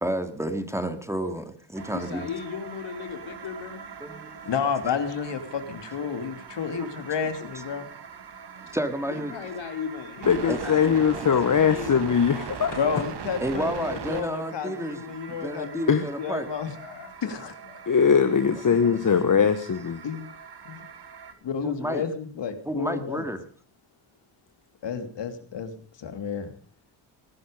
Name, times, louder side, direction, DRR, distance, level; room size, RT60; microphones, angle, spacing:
voice 1, 0.0-2.3 4.0-4.3 6.7-6.9 7.5-7.6 8.7-9.3 10.5-10.7 13.4-15.0 15.4-16.5 18.5-19.3 21.6-22.0 22.6-23.4, right 1 dB, 5° right, 2.5 m, -31 dB
sound 1, 1.7-21.3, right 6 dB, 55° right, 2.3 m, -41 dB
voice 2, 1.9-3.8 9.1-11.3 11.7-12.0 16.7-17.1 17.6-18.0, left 7 dB, 75° left, 3.1 m, -36 dB
voice 3, 4.5-7.9 12.8-15.8 16.2-16.7 17.2-17.5 20.0-20.3 20.6-20.8 21.4-23.3 24.8-25.7 26.0-26.5, left 6 dB, 60° left, 2.9 m, -31 dB
voice 4, 10.3-12.8 15.9-16.0 17.9-20.0, left 7 dB, 40° left, 1.5 m, -21 dB
20.5 x 11.0 x 5.1 m
supercardioid pair, 60°, 49 cm